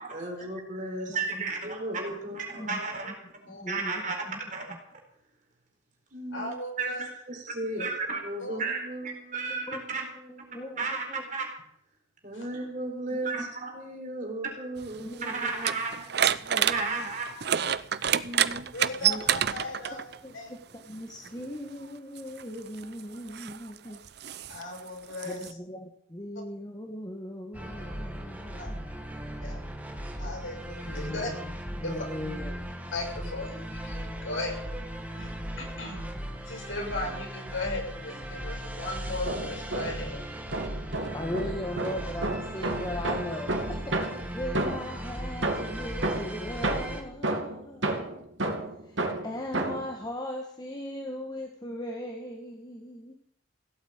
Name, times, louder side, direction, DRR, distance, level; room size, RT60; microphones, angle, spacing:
voice 1, 0.0-4.7 6.1-11.5 12.2-16.3 16.7-17.3 18.2-18.7, right 3 dB, 40° right, 2 dB, 4.4 m, -34 dB
voice 2, 1.1-1.4 2.3-3.1 3.5-4.4 4.7-4.8 9.7-9.8 10.5-11.2 13.1-13.5 15.0-15.8 16.4-17.1 19.0-19.2 20.2-24.0 25.2-28.9 31.0-31.5 31.8-32.5 41.1-48.2 48.8-53.1, left 1 dB, 20° left, 1 dB, 1.7 m, -39 dB
voice 3, 3.5-3.8 6.3-7.0 7.8-7.9 8.4-8.6 12.3-12.4 18.7-20.0 20.3-20.5 24.5-25.5 28.6-28.7 29.4-29.6 30.2-31.3 31.8-32.0 32.9-34.6 35.1-35.3 35.6-36.0 36.4-40.2, left 2 dB, 80° left, 1 dB, 6.2 m, -37 dB
sound 1, 14.8-20.2 21.2-21.4 22.2-25.5, right 9 dB, 55° right, 0.6 m, -29 dB
sound 2, 27.5-47.0, equal, 10° right, 1.7 m, -37 dB
sound 3, 39.1-40.1 40.5-45.0 45.4-49.9, right 2 dB, 70° right, 2.5 m, -32 dB
16.5 x 8.8 x 8.9 m, 0.68 s
head